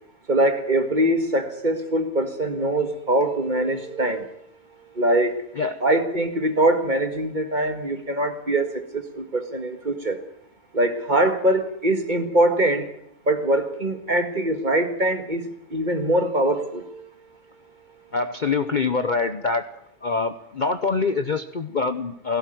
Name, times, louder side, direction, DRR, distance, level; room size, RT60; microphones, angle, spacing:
voice 1, 0.3-4.4 5.0-5.4 5.8-10.2 10.7-12.9 13.3-17.1, right 1 dB, 35° right, 7 dB, 1.8 m, -23 dB
voice 2, 18.1-19.6 20.0-22.4, left 4 dB, 40° left, 10 dB, 0.9 m, -25 dB
17.0 x 16.5 x 9.2 m, 0.71 s
omnidirectional pair, 1.5 m